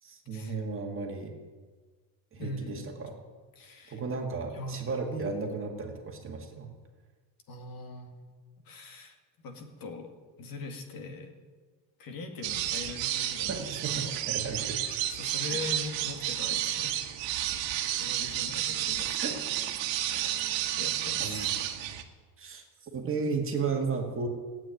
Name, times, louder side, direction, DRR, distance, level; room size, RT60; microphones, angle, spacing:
voice 1, 0.0-1.3 2.3-3.2 3.6-6.7 13.5-14.8 15.4-15.6 19.2-19.4 20.1-20.3 21.2-21.6 22.4-24.3, right 4 dB, 25° right, 2 dB, 2.0 m, -34 dB
voice 2, 2.4-2.9 3.6-4.0 4.5-4.9 7.5-8.3 8.6-9.2 9.4-10.1 10.4-11.3 12.0-14.2 15.1-17.0 18.0-19.4 20.8-21.6, left 3 dB, 45° left, 4 dB, 2.2 m, -41 dB
sound 1, 12.4-22.0, right 12 dB, 70° right, 1.6 m, -31 dB
16.5 x 9.0 x 9.2 m, 1.4 s
cardioid pair, 150°, 48 cm